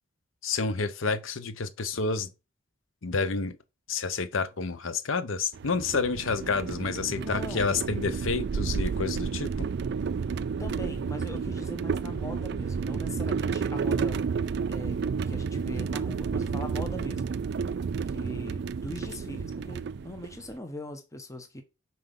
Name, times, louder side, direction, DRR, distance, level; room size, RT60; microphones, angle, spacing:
voice 1, 0.4-2.3 3.0-3.6 3.9-9.5, left 4 dB, 75° left, 0.7 m, -29 dB
sound 1, 5.5-20.5, right 5 dB, 55° right, 0.3 m, -31 dB
voice 2, 7.2-7.8 10.6-14.2 14.7-15.0 15.2-17.3 18.1-21.6, left 1 dB, 15° left, 0.9 m, -40 dB
5.9 x 4.2 x 5.2 m
head